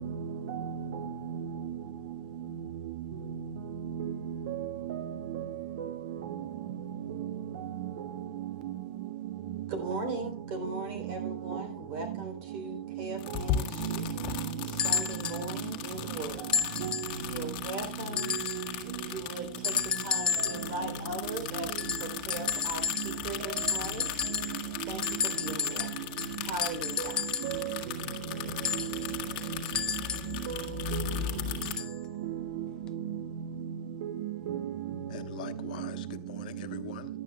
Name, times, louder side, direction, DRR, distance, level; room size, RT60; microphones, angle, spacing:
voice 1, 0.0-1.7 3.9-5.4 5.8-6.5 7.1-7.7 8.3-8.8 9.9-10.0 11.2-11.7 13.3-13.4 13.8-14.5 15.5-15.7 16.8-17.1 18.2-18.7 20.4-20.6 20.8-20.9 23.4-23.8 24.3-24.4 25.8-25.9 27.0-27.8 28.7-29.2 30.3-31.2 32.2-33.2 34.0-35.0 35.5-35.9 36.7-36.8, right 9 dB, 75° right, 0.9 m, -36 dB
voice 2, 9.7-14.1 14.6-16.5 17.3-18.4 18.8-24.1 24.9-26.0 26.4-27.2, right 2 dB, 45° right, 3.5 m, -39 dB
sound 1, 13.2-31.7, left 10 dB, 45° left, 1.8 m, -38 dB
sound 2, 14.8-15.4 16.5-17.2 18.2-18.7 19.6-20.7 21.8-23.3 23.6-24.6 25.0-27.6 28.6-30.4 31.6-32.0 32.9-33.0, left 7 dB, 20° left, 0.4 m, -32 dB
voice 3, 35.1-37.2, left 12 dB, 85° left, 1.2 m, -44 dB
17.5 x 11.5 x 2.3 m
supercardioid pair, 170°, 4 cm